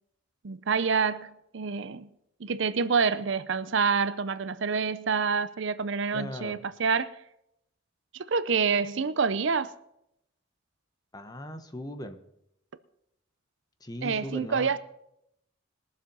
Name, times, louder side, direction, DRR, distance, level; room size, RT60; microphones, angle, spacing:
voice 1, 0.4-2.1 2.4-7.1 8.1-9.7 14.0-14.8, right 5 dB, 60° right, 0.6 m, -27 dB
voice 2, 6.1-6.6 11.1-12.2 13.8-14.7, left 1 dB, 20° left, 1.0 m, -38 dB
21.5 x 7.2 x 5.4 m
head